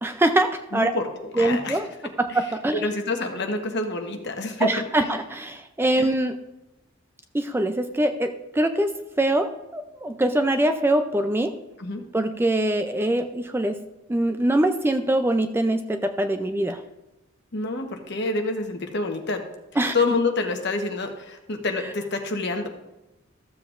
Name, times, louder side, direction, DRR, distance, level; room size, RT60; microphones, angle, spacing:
voice 1, 0.0-0.9 1.4-1.9 2.2-2.9 4.6-6.4 7.3-8.9 9.2-11.5 12.1-13.8 14.1-16.8 19.8-19.9, right 1 dB, 10° right, 7 dB, 0.4 m, -23 dB
voice 2, 0.7-4.7 5.0-5.1 6.0-6.1 11.8-12.0 17.5-19.4 19.9-22.7, left 3 dB, 55° left, 4 dB, 1.1 m, -28 dB
14.0 x 7.4 x 2.5 m, 0.99 s
head